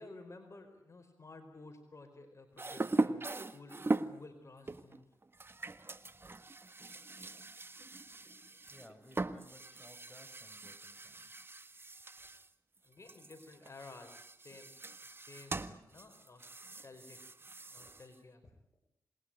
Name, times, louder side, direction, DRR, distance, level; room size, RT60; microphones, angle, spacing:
voice 1, 0.0-5.0 12.2-12.3 12.8-14.7 15.0-17.2 17.7-18.6, left 3 dB, 45° left, 6 dB, 4.8 m, -54 dB
sound 1, 2.6-4.2 4.7-12.5 12.8-18.2, right 2 dB, 35° right, 1.5 m, -40 dB
voice 2, 8.7-11.6, left 1 dB, 10° left, 7 dB, 6.8 m, -59 dB
27.5 x 21.0 x 9.2 m, 0.74 s
cardioid pair, 60°, 7 cm